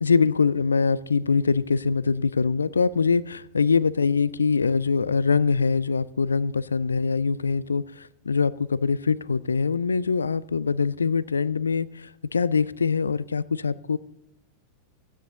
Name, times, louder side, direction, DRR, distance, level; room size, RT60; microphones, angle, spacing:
voice 1, 0.0-14.0, left 5 dB, 75° left, 0.4 m, -23 dB
15.5 x 9.7 x 3.8 m
figure-of-eight pair, 90°, 0 cm